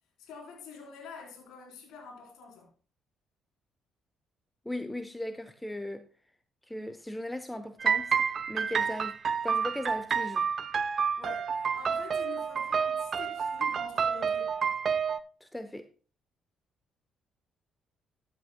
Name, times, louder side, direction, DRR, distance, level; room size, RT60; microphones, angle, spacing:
voice 1, 0.2-2.7 11.2-14.5, left 5 dB, 70° left, 3.9 m, -46 dB
voice 2, 4.6-6.0 6.7-8.2 8.5-10.5 15.4-15.9, left 1 dB, 10° left, 0.8 m, -38 dB
sound 1, 7.8-15.2, right 6 dB, 50° right, 0.6 m, -29 dB
14.0 x 9.1 x 2.2 m
hypercardioid pair, 45°, 0 cm